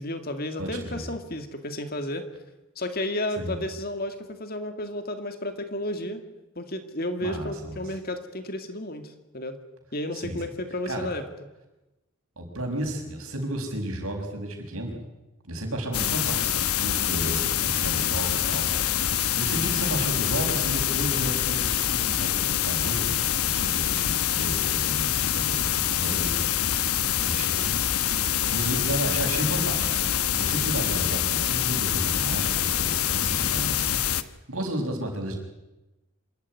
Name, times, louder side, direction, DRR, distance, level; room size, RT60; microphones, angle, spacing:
voice 1, 0.0-2.3 2.8-6.2 6.6-9.6 9.9-11.2 34.7-34.8, left 1 dB, 45° left, 7 dB, 2.3 m, -32 dB
voice 2, 0.6-1.1 3.4-3.6 7.2-7.8 10.1-10.4 10.9-11.1 12.4-15.0 15.4-26.5 27.2-28.2 28.5-34.0 34.5-35.3, right 1 dB, 75° right, 2 dB, 6.2 m, -33 dB
sound 1, 15.9-34.2, left 10 dB, 90° left, 1.1 m, -25 dB
26.5 x 14.0 x 9.7 m, 1.0 s
head